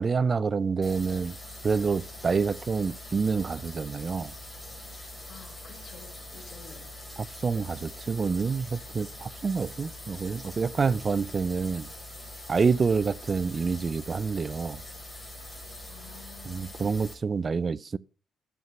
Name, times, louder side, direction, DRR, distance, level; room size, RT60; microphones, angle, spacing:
voice 1, 0.0-1.4 1.6-4.3 7.2-11.9 12.5-14.8 16.5-18.0, right 5 dB, 35° right, 0.5 m, -27 dB
sound 1, 0.8-17.1, left 1 dB, 5° left, 4.9 m, -43 dB
voice 2, 5.3-6.9 15.9-16.9, left 7 dB, 40° left, 4.9 m, -51 dB
12.5 x 7.5 x 5.6 m
cardioid pair, 90°, 0 cm